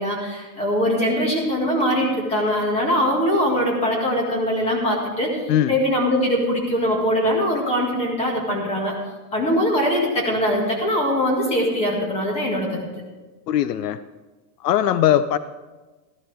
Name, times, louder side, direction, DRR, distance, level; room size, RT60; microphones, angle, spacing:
voice 1, 0.0-5.4 5.7-8.9 9.3-12.9, equal, 15° left, -1 dB, 1.9 m, -22 dB
voice 2, 13.5-14.0 14.6-15.4, left 11 dB, 75° left, 13 dB, 0.7 m, -19 dB
14.5 x 11.5 x 3.5 m, 1.2 s
supercardioid pair, 175°, 49 cm